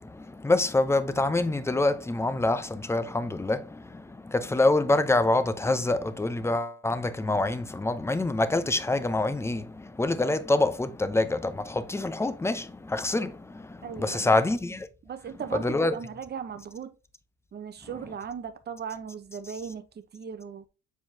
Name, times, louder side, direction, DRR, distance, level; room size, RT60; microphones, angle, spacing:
voice 1, 0.0-14.9 15.5-15.9, left 2 dB, 10° left, 0.7 m, -26 dB
voice 2, 13.8-14.4 15.0-16.9 17.5-19.9 20.1-20.6, right 7 dB, 35° right, 0.9 m, -37 dB
7.5 x 4.6 x 2.8 m
cardioid pair, 100°, 31 cm